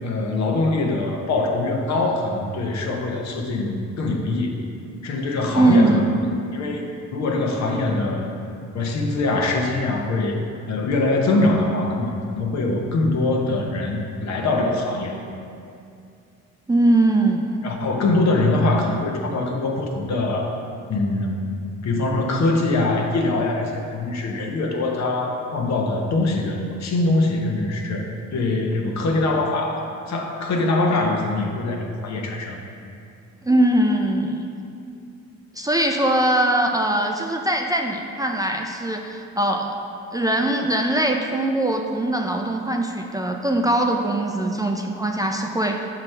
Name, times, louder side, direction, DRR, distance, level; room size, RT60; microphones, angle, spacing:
voice 1, 0.0-4.6 5.0-6.8 7.1-8.4 8.7-10.4 10.7-15.2 17.6-20.5 20.9-21.5 21.8-28.0 28.3-32.6, left 2 dB, 65° left, 1 dB, 0.9 m, -23 dB
voice 2, 5.6-6.1 16.7-17.6 33.4-34.5 35.5-39.8 40.1-45.9, right 1 dB, 15° right, 2 dB, 0.3 m, -21 dB
6.0 x 5.8 x 3.3 m, 2.5 s
cardioid pair, 90°, 30 cm